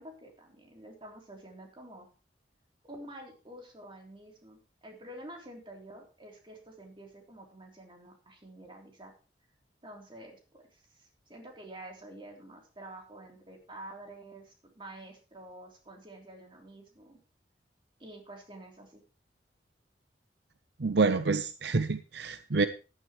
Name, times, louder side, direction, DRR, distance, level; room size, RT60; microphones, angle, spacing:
voice 1, 0.0-2.1 2.8-9.1 9.8-17.2 18.0-19.0, right 1 dB, 30° right, 1 dB, 3.3 m, -49 dB
voice 2, 20.8-22.7, right 4 dB, 70° right, 11 dB, 0.7 m, -27 dB
14.5 x 11.5 x 3.2 m, 0.33 s
head